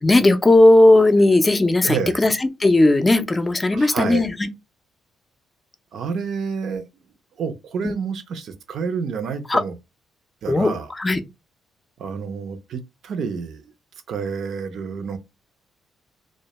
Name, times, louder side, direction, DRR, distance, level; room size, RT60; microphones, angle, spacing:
voice 1, 0.0-4.5 7.8-7.9 9.5-9.6 10.5-10.7 11.0-11.2, left 2 dB, 20° left, 0.4 m, -16 dB
voice 2, 1.8-2.2 3.7-4.3 5.9-6.8 7.4-9.7 10.4-10.9 12.0-13.6 14.1-15.2, right 6 dB, 65° right, 0.4 m, -28 dB
2.1 x 2.1 x 2.8 m
cardioid pair, 90°, 0 cm